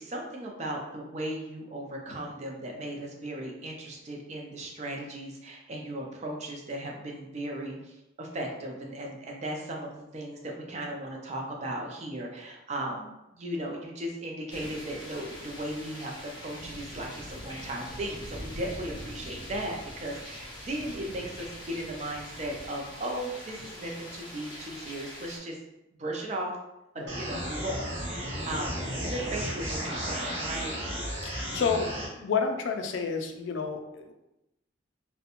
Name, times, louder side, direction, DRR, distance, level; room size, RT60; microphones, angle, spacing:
voice 1, 0.0-25.6 26.0-26.6 26.9-30.7, right 1 dB, 35° right, 0 dB, 0.4 m, -36 dB
sound 1, 14.5-25.4, equal, 25° left, 0.6 m, -43 dB
sound 2, 27.1-32.1, equal, 65° right, 0.7 m, -34 dB
voice 2, 31.2-34.1, left 5 dB, 75° left, 4 dB, 0.3 m, -30 dB
2.4 x 2.1 x 2.8 m, 0.92 s
head